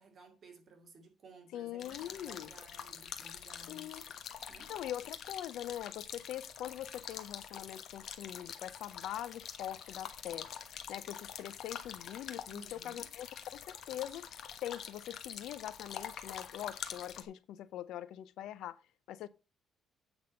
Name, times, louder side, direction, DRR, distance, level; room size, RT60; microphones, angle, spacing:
voice 1, 0.0-4.1 4.5-4.7 12.5-13.1, right 2 dB, 40° right, 2.4 m, -57 dB
voice 2, 1.5-2.5 3.7-4.0 4.7-10.5 10.9-14.3 14.6-18.8 19.1-19.3, left 12 dB, 80° left, 0.7 m, -43 dB
sound 1, 1.8-17.2, left 8 dB, 55° left, 1.3 m, -46 dB
8.7 x 6.1 x 5.3 m
cardioid pair, 140°, 0 cm